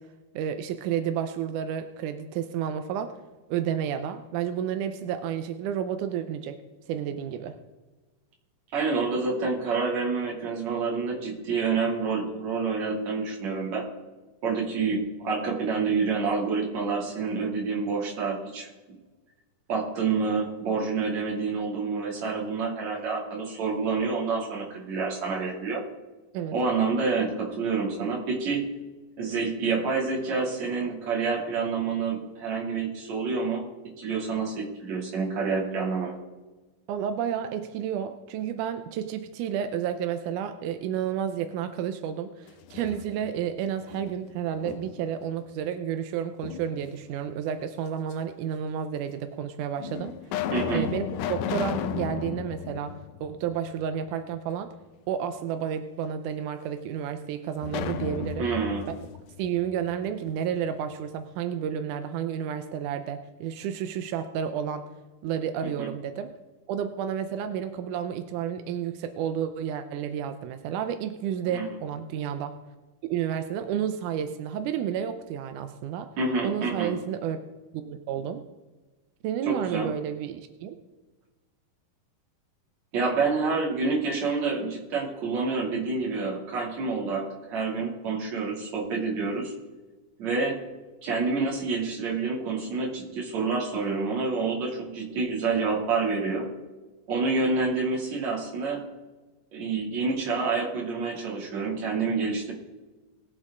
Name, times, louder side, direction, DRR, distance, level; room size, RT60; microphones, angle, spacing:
voice 1, 0.4-3.1 3.5-6.6 6.9-7.6 26.3-26.5 36.9-50.4 50.7-51.0 51.3-54.7 55.1-58.5 59.4-64.9 65.2-66.4 66.7-72.5 73.1-76.1 76.4-77.4 77.7-78.4 79.2-80.8, right 9 dB, 80° right, 8 dB, 1.8 m, -31 dB
voice 2, 8.7-13.8 14.4-18.7 19.7-25.8 26.5-28.6 29.2-33.6 34.0-36.2 50.5-50.9 58.4-58.9 65.8-65.9 71.5-71.7 76.2-76.9 79.4-79.9 82.9-89.5 90.2-90.6 91.0-96.5 97.1-98.8 99.5-102.5, right 4 dB, 50° right, -2 dB, 3.5 m, -28 dB
sound 1, 42.5-43.5 43.9-45.2 46.4-47.2 48.1-48.2 49.1-49.2 49.8-53.9 54.2-54.3 57.6-60.4, left 9 dB, 85° left, 1.8 m, -34 dB
20.5 x 7.7 x 3.6 m, 1.2 s
omnidirectional pair, 4.3 m